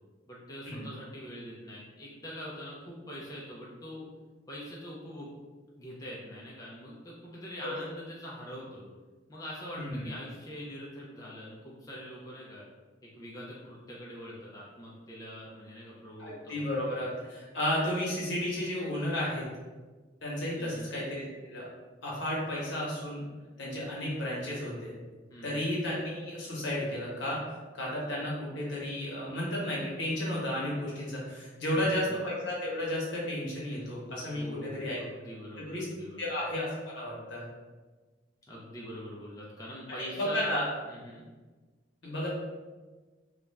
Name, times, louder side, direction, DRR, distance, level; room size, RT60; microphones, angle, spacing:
voice 1, 0.3-4.1 4.5-5.3 5.7-8.8 9.3-12.6 13.1-17.0 20.6-20.9 25.3-25.7 31.6-32.0 34.3-36.4 38.5-40.6 40.9-41.2, equal, 20° left, -5 dB, 0.4 m, -44 dB
voice 2, 9.7-10.1 16.2-19.5 20.2-21.7 22.0-23.2 23.6-24.9 25.4-27.4 27.7-35.0 35.7-35.9 36.2-37.4 40.0-40.7 42.0-42.3, left 1 dB, 75° left, -5 dB, 0.9 m, -33 dB
2.4 x 2.0 x 3.2 m, 1.3 s
head